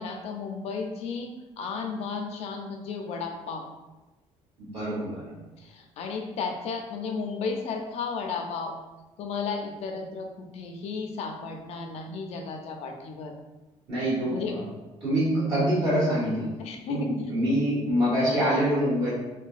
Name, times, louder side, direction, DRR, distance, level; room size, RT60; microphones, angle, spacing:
voice 1, 0.0-3.7 5.6-8.7 9.2-13.3 14.3-14.6 16.6-17.1, left 4 dB, 65° left, 3 dB, 0.5 m, -34 dB
voice 2, 4.6-5.3 13.9-14.6 15.0-16.5 16.9-19.1, equal, 50° right, -9 dB, 1.5 m, -25 dB
3.8 x 2.2 x 2.4 m, 1.1 s
cardioid pair, 150°, 12 cm